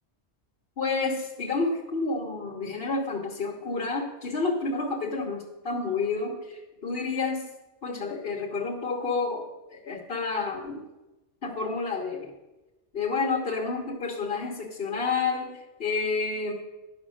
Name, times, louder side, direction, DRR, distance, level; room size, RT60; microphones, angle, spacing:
voice 1, 0.8-7.5 7.8-10.8 11.4-12.3 12.9-16.5, left 4 dB, 60° left, -2 dB, 1.2 m, -30 dB
11.5 x 5.2 x 6.3 m, 1.0 s
omnidirectional pair, 1.1 m